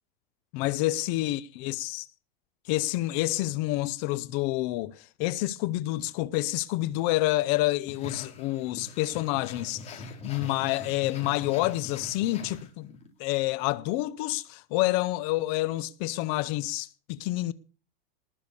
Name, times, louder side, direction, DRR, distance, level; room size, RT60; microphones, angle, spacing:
voice 1, 0.5-2.0 2.7-12.9 13.2-17.5, left 17 dB, 40° left, 0.6 m, -28 dB
sound 1, 7.9-13.1, left 2 dB, 20° left, 3.9 m, -43 dB
19.5 x 6.9 x 7.0 m
supercardioid pair, 155°, 29 cm